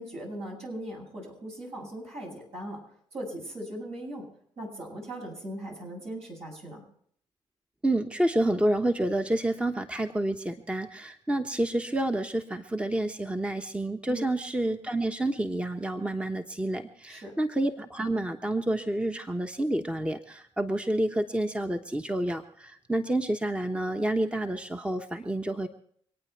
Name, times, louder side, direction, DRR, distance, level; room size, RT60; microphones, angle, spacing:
voice 1, 0.0-2.8 3.1-4.3 4.6-6.8 14.1-14.3 17.1-17.3, right 1 dB, 65° right, -2 dB, 8.0 m, -39 dB
voice 2, 7.8-25.7, right 1 dB, 10° right, 6 dB, 1.1 m, -29 dB
25.5 x 9.2 x 4.6 m, 0.63 s
hypercardioid pair, 50°, 12 cm